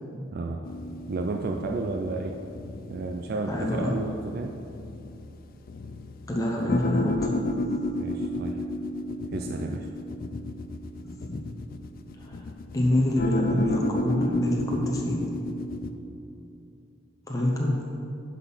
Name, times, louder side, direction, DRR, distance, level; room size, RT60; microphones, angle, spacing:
voice 1, 0.3-0.6 1.1-2.4 2.9-4.6 8.0-8.6 9.3-9.9, right 3 dB, 50° right, 2 dB, 0.4 m, -32 dB
sound 1, 0.6-15.9, left 1 dB, 50° left, 0.4 m, -33 dB
voice 2, 3.5-3.9 6.3-7.3 11.0-11.4 12.2-12.4 12.7-15.2 17.3-17.7, left 1 dB, 20° left, -2 dB, 0.9 m, -26 dB
11.5 x 4.2 x 5.5 m, 2.8 s
head